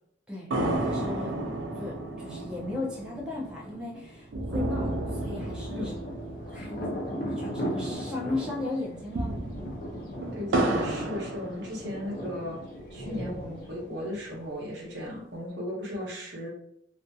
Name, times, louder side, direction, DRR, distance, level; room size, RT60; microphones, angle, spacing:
sound 1, 0.5-8.1 8.4-8.5 8.9-12.3 12.8-13.8, right 1 dB, 80° right, 0.4 m, -33 dB
voice 1, 0.8-5.9 6.5-6.8 7.2-9.3, left 2 dB, 5° right, -6 dB, 0.5 m, -36 dB
Thunder, 5.1-14.6, equal, 50° left, 0.5 m, -38 dB
voice 2, 10.3-12.6 12.9-16.5, left 1 dB, 65° right, -3 dB, 0.8 m, -36 dB
2.5 x 2.5 x 2.3 m, 0.74 s
head